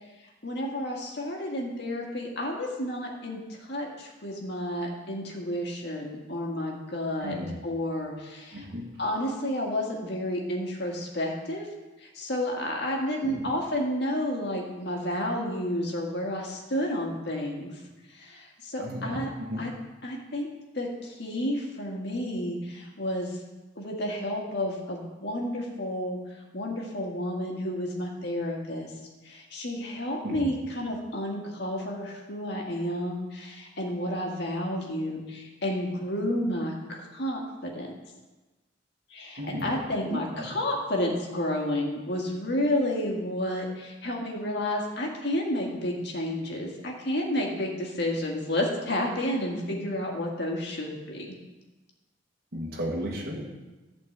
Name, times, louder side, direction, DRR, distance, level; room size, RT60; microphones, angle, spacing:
voice 1, 0.4-3.4 3.7-7.4 7.6-8.7 9.0-11.7 12.0-17.7 18.1-19.3 19.6-19.7 20.0-20.5 20.7-23.4 23.8-26.2 26.5-28.9 29.2-37.9 39.1-51.3, left 1 dB, 65° left, 0 dB, 1.9 m, -31 dB
voice 2, 7.2-7.5 8.5-8.8 13.2-13.4 18.8-19.2 19.5-19.6 30.2-30.5 39.4-40.5 52.5-53.5, equal, 55° right, -3 dB, 1.7 m, -34 dB
11.5 x 4.4 x 7.9 m, 1.2 s
head